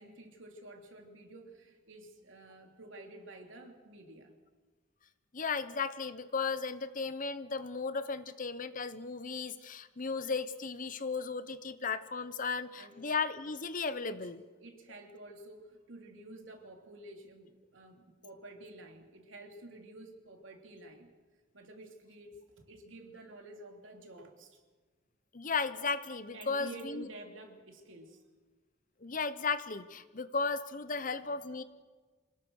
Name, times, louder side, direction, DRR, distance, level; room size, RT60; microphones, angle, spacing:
voice 1, 0.0-4.4 12.8-13.0 14.0-14.3 14.6-21.1 21.5-24.6 26.3-28.2 31.2-31.3, right 2 dB, 80° right, 2 dB, 3.2 m, -50 dB
voice 2, 5.3-14.4 25.3-27.1 29.0-31.6, left 4 dB, 45° left, 13 dB, 1.0 m, -35 dB
27.0 x 18.5 x 6.5 m, 1.4 s
head